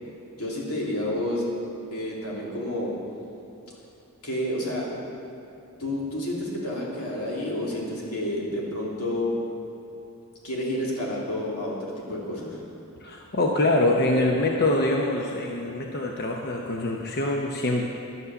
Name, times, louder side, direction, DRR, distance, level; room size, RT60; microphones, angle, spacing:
voice 1, 0.3-1.4 1.9-3.0 4.2-4.9 5.8-9.3 10.4-12.6, left 1 dB, 85° left, -4 dB, 2.8 m, -30 dB
voice 2, 13.0-17.8, left 2 dB, 45° left, 1 dB, 0.8 m, -24 dB
11.0 x 8.4 x 6.9 m, 2.8 s
head